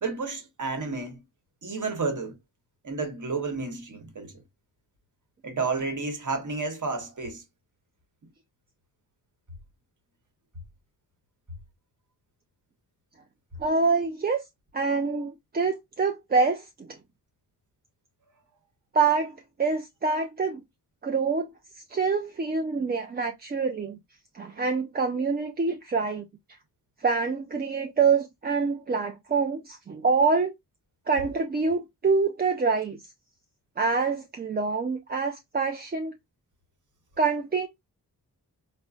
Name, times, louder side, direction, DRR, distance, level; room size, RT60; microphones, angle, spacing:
voice 1, 0.0-1.2 1.6-2.4 2.8-4.4 5.4-7.4, right 4 dB, 50° right, 1.1 m, -31 dB
voice 2, 13.6-14.4 14.7-17.0 18.9-20.6 21.0-21.5 21.9-24.0 24.3-26.2 27.0-30.5 31.1-33.0 33.8-36.2 37.2-37.7, right 4 dB, 25° right, 0.4 m, -26 dB
3.8 x 2.1 x 2.3 m
cardioid pair, 50°, 40 cm